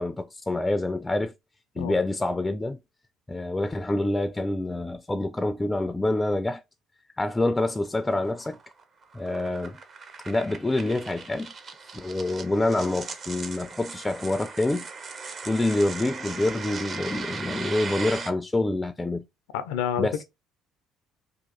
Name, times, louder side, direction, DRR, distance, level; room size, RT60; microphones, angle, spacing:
voice 1, 0.0-1.3 1.8-2.8 3.3-6.6 7.2-8.6 9.1-9.8 10.3-11.5 11.9-14.9 15.4-19.2 20.0-20.2, left 2 dB, 15° left, 0.3 m, -26 dB
sound 1, 7.6-18.3, right 4 dB, 45° right, 0.6 m, -38 dB
voice 2, 19.5-20.2, left 9 dB, 85° left, 0.5 m, -29 dB
2.8 x 2.4 x 3.8 m
supercardioid pair, 70°, 0 cm